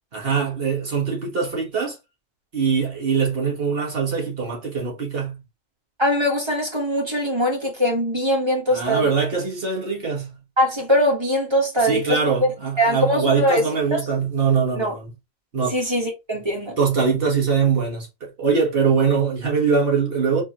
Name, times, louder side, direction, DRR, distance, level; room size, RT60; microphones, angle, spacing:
voice 1, 0.1-2.0 2.5-5.4 8.7-10.4 11.8-15.1 15.5-15.8 16.8-20.4, right 5 dB, 65° right, 1.5 m, -22 dB
voice 2, 6.0-9.1 10.6-12.5 12.8-13.6 13.9-14.0 14.8-14.9 15.7-16.8, equal, 25° right, 1.3 m, -21 dB
4.5 x 3.0 x 2.8 m
omnidirectional pair, 1.1 m